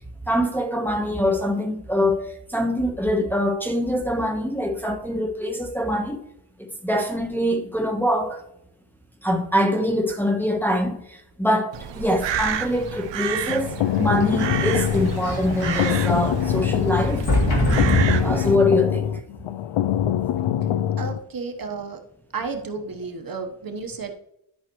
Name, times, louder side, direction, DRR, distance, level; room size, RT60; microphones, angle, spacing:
voice 1, 0.3-6.2 6.8-8.4 9.2-17.2 18.2-19.1, left 1 dB, 5° left, 1.1 m, -24 dB
Crow, 11.7-18.6, right 9 dB, 60° right, 0.8 m, -31 dB
sound 1, 13.3-21.2, left 10 dB, 70° left, 0.5 m, -24 dB
Sliding door, 14.1-18.8, left 1 dB, 50° left, 2.8 m, -25 dB
voice 2, 21.0-22.0 22.3-24.1, right 4 dB, 45° right, 1.1 m, -32 dB
11.5 x 5.7 x 3.1 m
cardioid pair, 105°, 50 cm